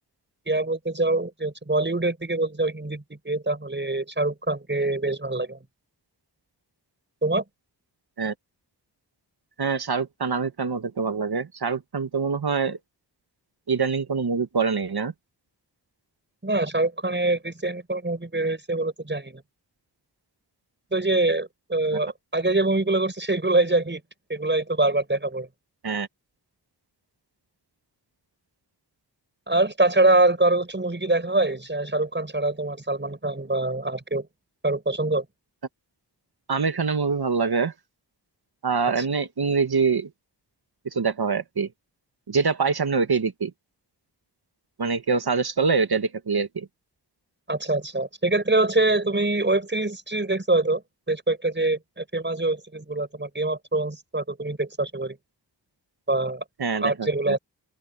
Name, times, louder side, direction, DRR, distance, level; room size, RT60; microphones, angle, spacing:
voice 1, 0.5-5.6 7.2-7.4 16.4-19.4 20.9-24.0 24.3-25.5 29.5-34.3 34.6-35.2 39.0-39.1 47.5-50.8 51.1-55.2 56.1-56.4 56.7-57.4, right 2 dB, 25° right, 6.9 m, -24 dB
voice 2, 9.6-12.8 13.7-15.1 21.9-22.0 25.8-26.1 36.5-37.7 38.6-40.1 40.9-41.7 42.3-43.5 44.8-46.7 56.6-57.4, right 5 dB, 65° right, 1.6 m, -25 dB
open air
wide cardioid pair, 75°, 41 cm